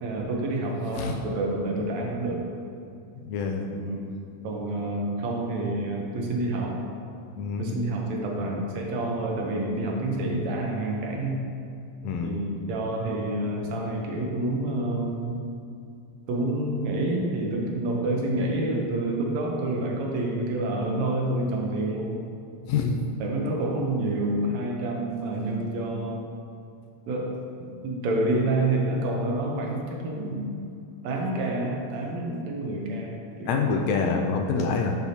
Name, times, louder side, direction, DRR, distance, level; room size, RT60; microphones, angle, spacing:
voice 1, 0.0-2.5 3.7-4.1 4.4-6.8 7.6-11.4 12.2-15.4 16.3-22.2 23.2-26.2 27.1-30.6 31.0-33.7, right 2 dB, 75° right, 0 dB, 2.0 m, -28 dB
voice 2, 3.2-3.7 7.4-7.7 12.0-12.4 22.7-23.0 33.5-35.0, left 5 dB, 80° left, 3 dB, 1.7 m, -26 dB
10.5 x 5.7 x 2.8 m, 2.6 s
omnidirectional pair, 3.3 m